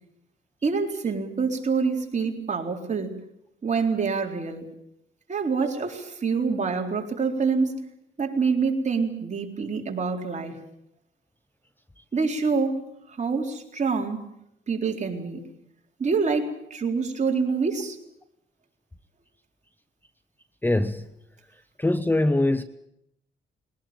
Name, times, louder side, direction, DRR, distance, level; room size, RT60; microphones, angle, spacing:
voice 1, 0.6-3.2 3.6-4.7 5.3-7.8 8.2-10.6 12.1-12.8 13.1-14.3 14.7-15.4 16.0-18.0, right 5 dB, 35° right, 4.0 m, -26 dB
voice 2, 20.6-21.1 21.8-22.6, left 2 dB, 10° left, 0.9 m, -22 dB
21.5 x 19.0 x 8.9 m
cardioid pair, 90°, 20 cm